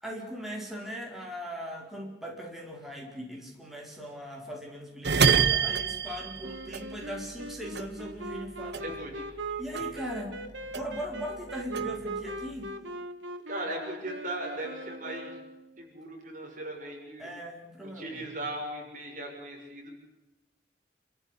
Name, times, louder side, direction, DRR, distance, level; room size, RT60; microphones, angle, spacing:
voice 1, 0.0-8.9 9.6-10.4 10.7-12.8 17.2-18.3, equal, ahead, -2 dB, 4.6 m, -39 dB
sound 1, 5.0-7.5 7.7-9.5 9.7-11.2 11.5-12.7, right 6 dB, 65° right, 1.2 m, -27 dB
Wind instrument woodwind instrument, 6.4-15.9, right 2 dB, 90° right, 2.1 m, -40 dB
voice 2, 8.8-9.2 13.5-15.3 15.8-17.3 17.8-19.9, right 1 dB, 45° right, 1 dB, 6.6 m, -38 dB
28.0 x 14.0 x 9.9 m, 1.0 s
head